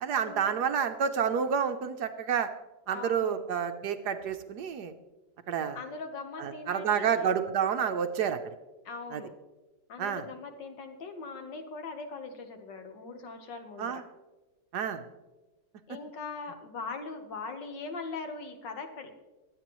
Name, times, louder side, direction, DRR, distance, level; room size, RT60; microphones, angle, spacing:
voice 1, 0.0-2.5 2.9-4.9 5.5-5.8 6.4-8.4 9.1-9.2 10.0-10.2 13.8-14.0 14.7-15.0, right 7 dB, 65° right, 8 dB, 1.2 m, -29 dB
voice 2, 2.9-3.4 5.7-7.4 8.9-9.3 9.9-14.0 15.9-19.1, left 4 dB, 70° left, 6 dB, 1.9 m, -41 dB
22.5 x 9.0 x 3.1 m, 1.1 s
omnidirectional pair, 2.1 m